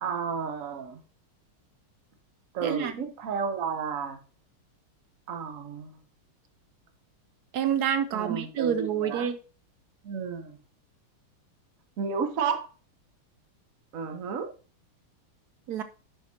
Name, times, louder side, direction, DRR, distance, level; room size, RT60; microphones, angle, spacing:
voice 1, 0.0-1.0 2.5-4.2 5.3-5.9 8.1-9.3 10.0-10.6 12.0-12.7 13.9-14.5, right 6 dB, 55° right, 7 dB, 1.0 m, -32 dB
voice 2, 2.6-2.9 7.5-9.4 15.7-15.8, right 9 dB, 80° right, 10 dB, 0.8 m, -27 dB
10.5 x 5.8 x 2.9 m, 0.35 s
omnidirectional pair, 2.4 m